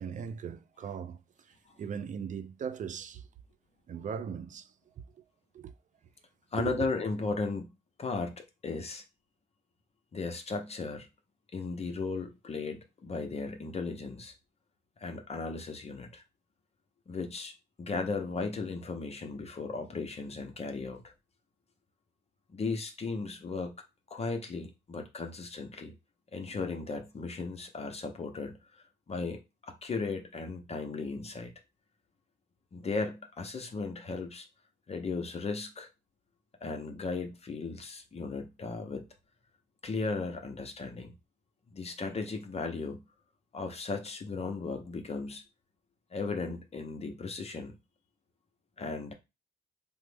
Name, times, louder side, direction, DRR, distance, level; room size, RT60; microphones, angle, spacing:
voice 1, 0.0-3.3 3.9-5.2 5.5-5.7 6.6-6.9, right 7 dB, 40° right, 0.4 m, -39 dB
voice 2, 6.5-7.7 8.0-9.0 10.1-11.1 11.5-14.3 15.0-16.2 17.1-17.5 17.8-21.1 22.5-23.7 24.1-25.9 26.3-28.6 29.1-31.5 32.7-34.5 34.9-35.9 36.6-39.1 39.8-41.2 41.7-43.0 43.5-45.4 46.1-47.7 48.8-49.1, left 4 dB, 30° left, 0.6 m, -36 dB
3.2 x 2.0 x 3.3 m
cardioid pair, 90°, 20 cm